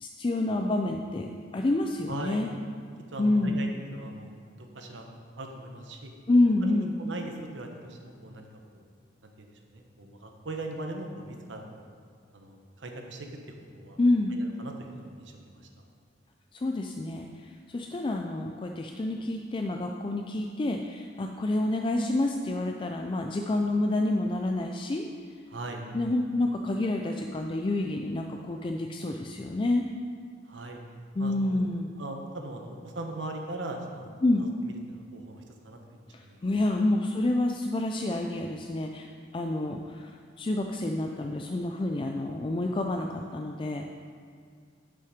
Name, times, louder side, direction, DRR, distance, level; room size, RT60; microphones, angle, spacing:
voice 1, 0.0-2.5 3.2-3.6 6.3-6.9 14.0-14.4 16.5-25.0 25.9-29.9 31.2-31.9 34.2-34.4 36.1-43.9, left 2 dB, 25° left, 2 dB, 0.4 m, -28 dB
voice 2, 2.1-2.4 3.1-5.0 5.4-6.1 6.6-8.5 8.7-8.8 9.2-11.9 12.3-13.3 13.6-14.0 14.4-15.7 25.5-25.9 30.4-30.8 31.2-31.6 32.0-34.5 34.9-36.4, right 2 dB, 75° right, 3 dB, 1.1 m, -40 dB
9.7 x 5.7 x 5.0 m, 2.1 s
head